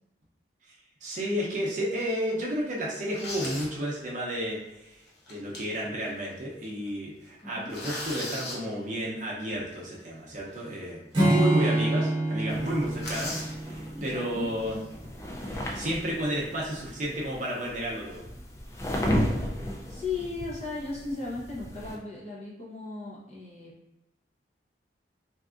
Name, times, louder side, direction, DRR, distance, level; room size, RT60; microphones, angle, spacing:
voice 1, 1.0-5.0 5.3-13.4 13.6-14.8 15.5-18.2, equal, 40° right, -4 dB, 0.6 m, -31 dB
sound 1, 1.6-1.8 2.3-2.4 2.9-3.7 4.2-4.3 5.1-5.8 6.2-6.3 6.6-6.9 7.2-8.6 10.6-10.7 11.1-11.2 11.5-11.6 11.9-12.1 12.4-13.5 14.6-14.8 15.4-16.0, left 1 dB, 65° left, 0.9 m, -38 dB
Acoustic guitar / Strum, 11.1-14.6, right 2 dB, 25° right, 1.0 m, -27 dB
sound 2, 12.5-22.0, equal, 15° left, 0.3 m, -35 dB
voice 2, 13.9-14.5 19.9-23.7, left 3 dB, 35° left, -6 dB, 0.9 m, -36 dB
3.4 x 2.6 x 2.4 m, 0.95 s
head